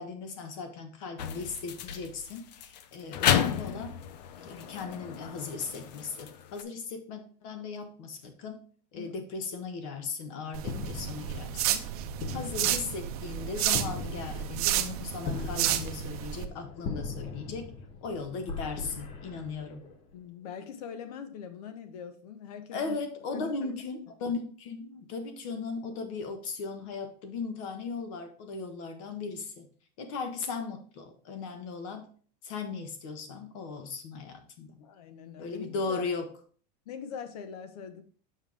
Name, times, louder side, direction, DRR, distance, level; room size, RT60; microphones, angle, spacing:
voice 1, 0.0-4.0 4.4-8.6 8.9-11.9 12.3-17.7 18.0-19.9 22.7-29.7 30.0-32.1 32.4-34.8 35.4-36.3, left 4 dB, 50° left, 1.3 m, -37 dB
sound 1, 1.2-6.6, left 9 dB, 85° left, 0.7 m, -32 dB
sound 2, 10.5-16.5, right 12 dB, 65° right, 0.7 m, -31 dB
sound 3, 10.6-20.1, left 4 dB, 25° left, 0.7 m, -40 dB
voice 2, 20.1-23.0 23.3-23.5 34.8-36.0 36.9-38.0, left 7 dB, 70° left, 1.1 m, -42 dB
7.2 x 5.6 x 3.4 m
supercardioid pair, 175°, 21 cm